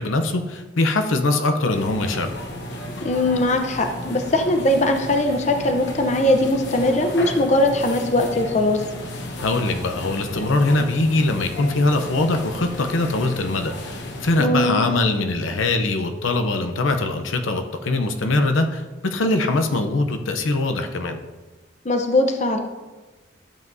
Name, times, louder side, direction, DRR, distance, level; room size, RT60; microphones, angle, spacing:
voice 1, 0.0-2.3 9.4-21.2, left 2 dB, 80° left, 6 dB, 0.7 m, -22 dB
sound 1, 1.7-14.4, left 1 dB, 60° left, 1.1 m, -34 dB
voice 2, 3.0-8.8 14.4-14.8 21.8-22.6, left 1 dB, 35° left, 5 dB, 0.7 m, -20 dB
12.0 x 7.5 x 2.7 m, 1.2 s
head